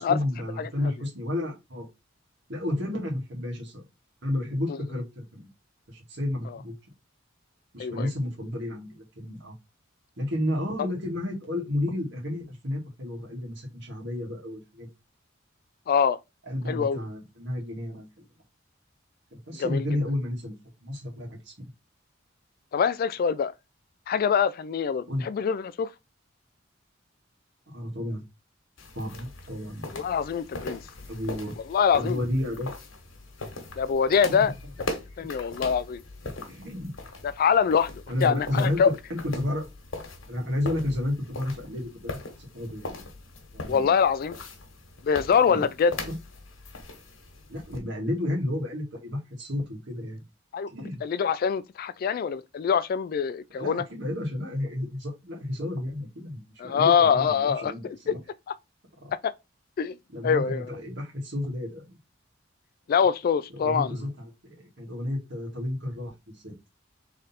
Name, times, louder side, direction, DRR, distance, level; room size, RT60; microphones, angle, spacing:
voice 1, 0.0-1.9 2.5-3.8 4.2-5.5 5.9-6.7 7.7-9.5 10.2-14.9 16.4-18.2 19.3-21.7 25.1-25.2 27.7-28.2 28.9-29.9 31.1-31.6 31.9-32.7 34.3-34.4 36.4-36.9 38.1-38.8 39.1-39.7 40.3-43.1 43.5-43.9 45.4-45.6 46.0-46.1 47.5-50.2 50.7-51.0 53.6-58.2 59.0-59.1 60.1-62.0 63.5-66.5, left 1 dB, 65° right, 1.8 m, -32 dB
voice 2, 15.9-16.2 16.7-17.0 19.6-19.9 22.7-23.5 24.1-25.9 29.9-30.8 31.7-32.2 33.8-34.5 35.2-36.0 37.2-38.9 43.7-44.3 45.0-45.9 50.5-50.7 51.0-53.8 56.6-58.2 58.5-58.6 59.2-59.3 59.8-60.0 60.2-60.7 62.9-64.0, left 6 dB, 50° left, 0.3 m, -24 dB
sound 1, 28.8-47.8, left 2 dB, 90° left, 1.3 m, -40 dB
3.8 x 3.2 x 4.1 m
head